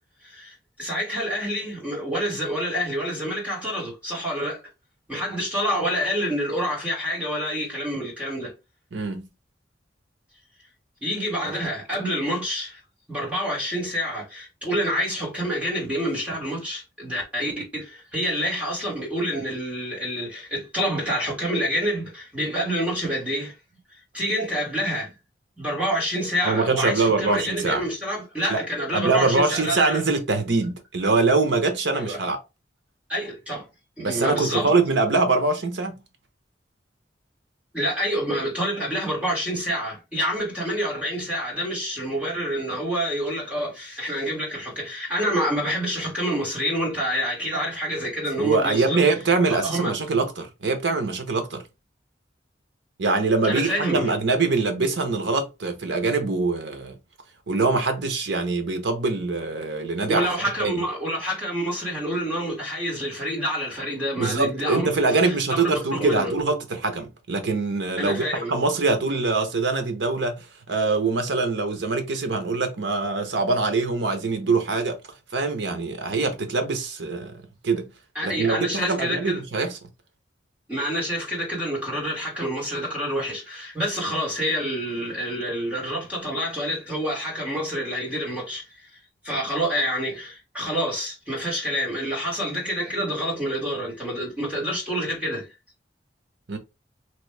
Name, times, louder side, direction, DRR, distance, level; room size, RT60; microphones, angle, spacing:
voice 1, 0.2-4.6 5.1-8.5 11.0-12.8 13.1-23.5 24.1-25.1 25.6-30.0 31.9-32.2 33.1-33.7 34.0-34.7 37.7-49.0 49.6-49.9 53.4-54.1 60.1-64.9 65.2-66.3 68.0-68.5 78.2-79.4 80.7-88.9 89.2-95.5, equal, 10° right, 1.7 m, -27 dB
voice 2, 8.9-9.2 26.4-27.8 28.5-28.6 28.9-32.4 34.0-35.9 48.4-51.6 53.0-57.0 57.5-60.3 60.6-60.8 64.2-68.2 68.5-75.0 75.3-77.9 78.2-79.8 96.5-96.6, right 3 dB, 75° right, 0.8 m, -23 dB
3.0 x 2.6 x 3.2 m
head